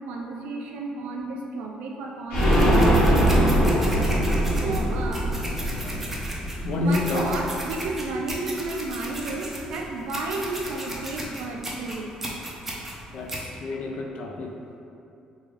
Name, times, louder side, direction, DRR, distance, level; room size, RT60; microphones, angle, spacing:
voice 1, 0.0-3.5 4.6-5.3 6.7-12.1, right 2 dB, 85° right, 0 dB, 0.4 m, -32 dB
sound 1, 2.3-7.9 8.2-8.3 8.6-8.7, right 1 dB, 85° left, 1.1 m, -22 dB
fast scissors, 2.4-13.5, right 1 dB, 10° right, 0.5 m, -36 dB
voice 2, 5.6-6.0 6.6-7.4 13.1-14.5, left 2 dB, 55° left, 1 dB, 0.4 m, -29 dB
3.6 x 2.3 x 3.2 m, 2.7 s
cardioid pair, 150°, 2 cm